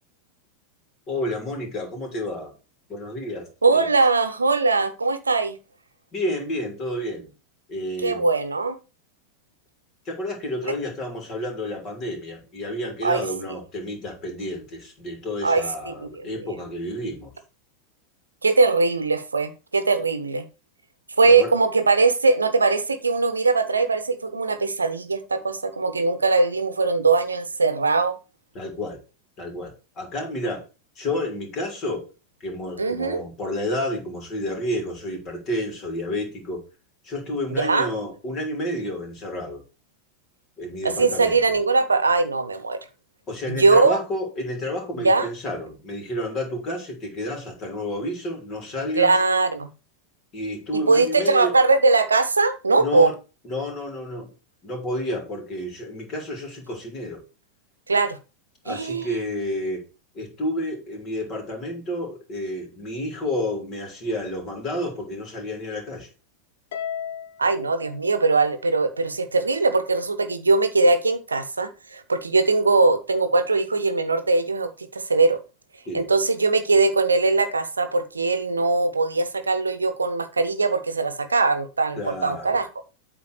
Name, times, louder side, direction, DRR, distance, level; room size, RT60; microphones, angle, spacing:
voice 1, 1.1-2.5 2.9-3.9 6.1-7.3 7.7-8.3 10.0-17.3 21.2-21.5 28.5-29.0 29.4-30.6 30.9-32.1 32.4-36.6 37.0-39.6 40.6-41.4 43.3-49.1 50.3-51.5 52.8-53.1 53.4-54.3 54.6-57.2 58.6-59.8 60.1-66.1 75.9-76.1 81.9-82.6, left 1 dB, 30° left, 3 dB, 3.3 m, -30 dB
voice 2, 3.6-5.6 8.0-8.8 13.0-13.2 15.4-16.5 18.4-20.4 21.2-28.2 32.8-33.2 37.6-37.9 40.8-42.8 43.5-44.0 45.0-45.3 49.0-49.7 50.7-53.1 57.9-58.2 58.7-59.1 67.4-75.4 75.9-82.7, right 3 dB, 75° right, 10 dB, 0.8 m, -21 dB
Harp, 66.7-69.2, left 8 dB, 55° left, 0.9 m, -36 dB
8.3 x 3.7 x 6.4 m, 0.32 s
figure-of-eight pair, 90°, 0 cm